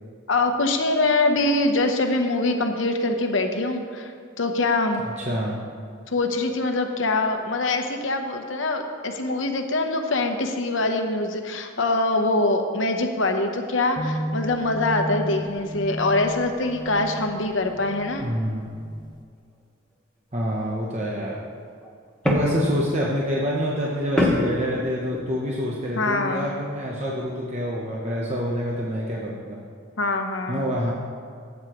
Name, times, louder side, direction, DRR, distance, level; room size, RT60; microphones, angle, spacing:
voice 1, 0.3-4.1 4.4-5.0 6.1-18.3 26.0-26.5 30.0-30.7, left 2 dB, 75° left, 5 dB, 0.9 m, -24 dB
voice 2, 5.2-5.6 18.2-18.7 20.3-21.4 22.2-29.6 30.5-30.9, equal, 35° right, -4 dB, 0.9 m, -26 dB
sound 1, 14.0-19.2, equal, 20° left, 0.4 m, -33 dB
sound 2, 21.7-22.9 24.2-25.4, left 1 dB, 5° left, 1.1 m, -25 dB
15.5 x 8.2 x 3.1 m, 2.2 s
head